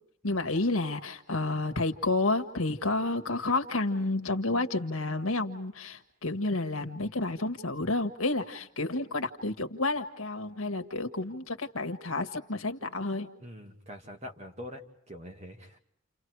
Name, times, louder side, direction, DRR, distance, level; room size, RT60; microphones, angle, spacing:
voice 1, 0.2-13.3, left 2 dB, 90° left, 8 dB, 1.7 m, -30 dB
voice 2, 13.4-15.8, left 1 dB, 30° right, 3 dB, 2.4 m, -44 dB
30.0 x 29.0 x 4.8 m, 0.67 s
head